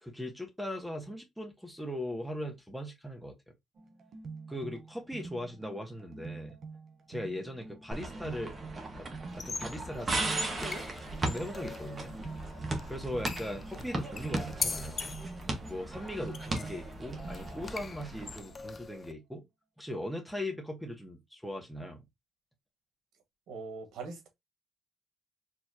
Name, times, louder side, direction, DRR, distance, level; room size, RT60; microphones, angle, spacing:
voice 1, 0.0-3.3 4.5-6.5 7.1-8.5 8.9-10.9 11.2-12.2 12.9-15.2 15.7-19.4 19.8-22.0, left 1 dB, ahead, 1.4 m, -39 dB
sound 1, 3.8-18.6, right 4 dB, 60° right, 1.0 m, -47 dB
sound 2, 7.9-18.4, right 2 dB, 35° right, 1.5 m, -37 dB
sound 3, 9.3-19.1, left 4 dB, 35° left, 0.6 m, -42 dB
voice 2, 23.5-24.3, right 4 dB, 80° right, 1.7 m, -41 dB
4.7 x 3.1 x 2.9 m
cardioid pair, 90°, 0 cm